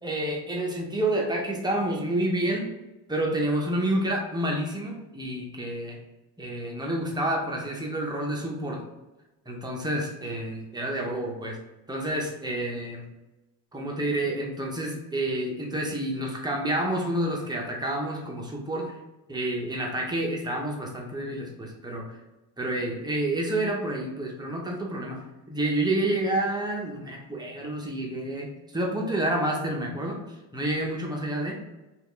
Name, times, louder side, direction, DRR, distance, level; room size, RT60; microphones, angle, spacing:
voice 1, 0.0-2.7 3.1-6.0 6.4-8.8 9.5-11.6 11.9-13.1 13.7-19.0 19.3-22.1 22.6-25.2 25.5-31.6, right 1 dB, 10° right, -1 dB, 0.7 m, -29 dB
2.8 x 2.4 x 3.6 m, 1.1 s
supercardioid pair, 95°, 46 cm